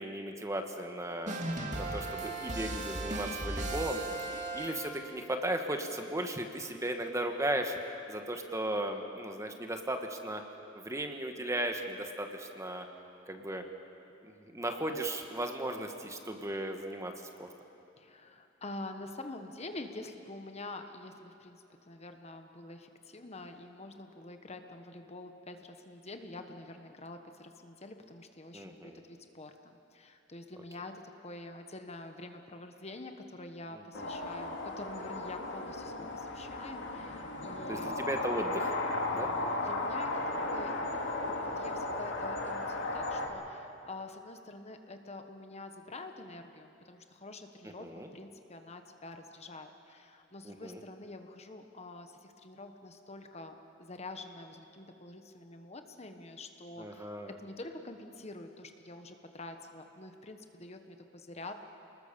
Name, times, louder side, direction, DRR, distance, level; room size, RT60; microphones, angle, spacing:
voice 1, 0.0-1.3 1.8-4.0 4.5-7.7 8.1-10.4 10.7-12.8 13.3-13.6 14.5-17.1 17.4-17.5 28.5-29.0 33.9-34.1 37.7-38.7 39.1-39.3 47.8-48.1 50.4-50.8 56.8-57.3, right 1 dB, 15° right, 4 dB, 1.4 m, -36 dB
sound 1, 1.3-5.1, right 2 dB, 40° right, 2.3 m, -36 dB
voice 2, 4.1-4.5 18.0-30.9 31.2-38.1 39.1-40.1 40.4-57.1 57.4-61.5, left 2 dB, 35° left, 6 dB, 1.3 m, -47 dB
sound 2, 33.9-43.3, left 2 dB, 75° left, 2.7 m, -35 dB
29.0 x 20.5 x 6.9 m, 2.8 s
head